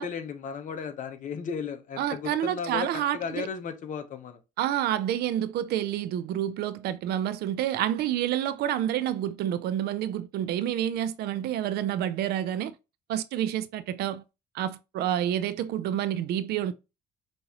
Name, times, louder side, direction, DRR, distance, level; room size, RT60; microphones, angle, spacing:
voice 1, 0.0-4.4, left 6 dB, 50° left, 0.9 m, -35 dB
voice 2, 2.0-3.5 4.6-12.7 13.1-14.2 14.5-16.7, right 11 dB, 70° right, 0.4 m, -28 dB
5.4 x 2.5 x 2.9 m
cardioid pair, 110°, 17 cm